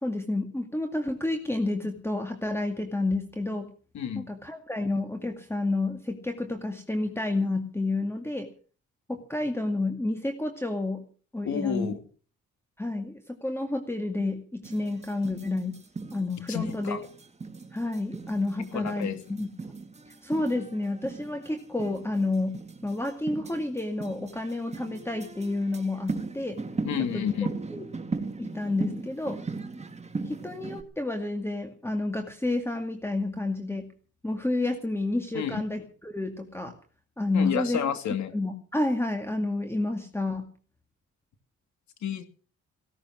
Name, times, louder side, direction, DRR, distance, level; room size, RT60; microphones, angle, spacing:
voice 1, 0.0-3.7 4.2-8.5 9.1-11.0 11.3-11.9 12.8-15.8 16.1-17.0 17.7-19.5 20.2-26.6 27.0-27.3 27.7-27.8 28.4-29.4 30.3-33.9 34.2-36.7 37.2-37.8 38.3-40.5, left 2 dB, 10° left, 5 dB, 2.2 m, -30 dB
voice 2, 3.9-4.3 11.4-12.0 16.5-17.0 18.7-19.2 26.8-27.5 35.3-35.6 37.3-38.3 42.0-42.2, left 8 dB, 70° left, 9 dB, 2.8 m, -30 dB
sound 1, 14.6-30.8, right 3 dB, 20° right, 2.0 m, -38 dB
16.5 x 13.0 x 6.2 m, 0.40 s
cardioid pair, 90°, 30 cm